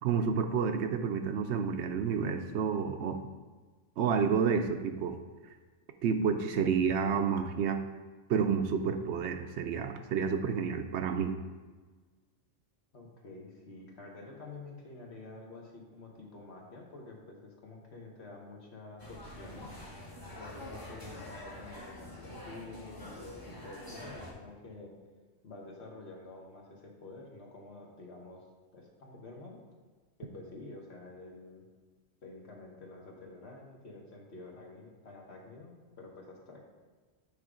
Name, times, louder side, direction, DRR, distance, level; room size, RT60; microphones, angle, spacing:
voice 1, 0.0-3.2 4.0-5.2 6.0-7.8 8.3-11.3, right 6 dB, 70° right, 7 dB, 0.8 m, -30 dB
voice 2, 12.9-19.7 20.4-24.9 25.4-28.4 28.7-29.6 30.2-31.6 32.2-36.6, left 3 dB, 60° left, -1 dB, 1.5 m, -49 dB
sound 1, 19.0-24.3, left 1 dB, 20° left, 1.3 m, -46 dB
8.9 x 3.4 x 4.9 m, 1.4 s
omnidirectional pair, 1.3 m